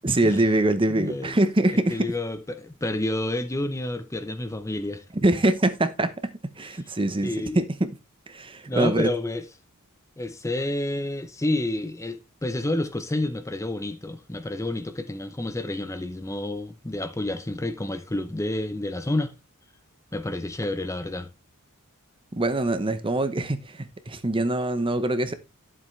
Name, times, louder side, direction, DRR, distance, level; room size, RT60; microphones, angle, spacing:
voice 1, 0.0-2.1 5.1-6.3 6.6-7.9 8.3-9.1 22.3-25.3, right 1 dB, 25° right, 0.9 m, -24 dB
voice 2, 0.9-1.3 1.7-5.0 7.2-7.6 8.7-9.5 10.2-19.3 20.1-21.3, left 1 dB, 15° left, 0.7 m, -29 dB
11.0 x 7.6 x 3.2 m
head